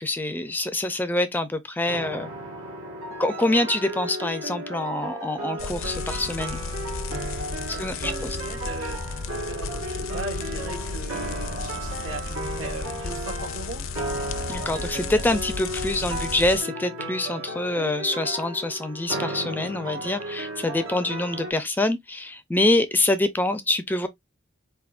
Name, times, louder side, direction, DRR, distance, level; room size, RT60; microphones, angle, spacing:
voice 1, 0.0-2.3 3.2-6.6 7.7-8.4 14.5-24.1, left 2 dB, 10° left, 0.4 m, -25 dB
sound 1, 1.9-21.5, right 1 dB, 90° right, 1.4 m, -34 dB
sound 2, 5.6-16.6, left 4 dB, 65° left, 0.5 m, -34 dB
voice 2, 7.7-13.9, right 2 dB, 75° right, 1.5 m, -39 dB
4.3 x 3.5 x 2.4 m
head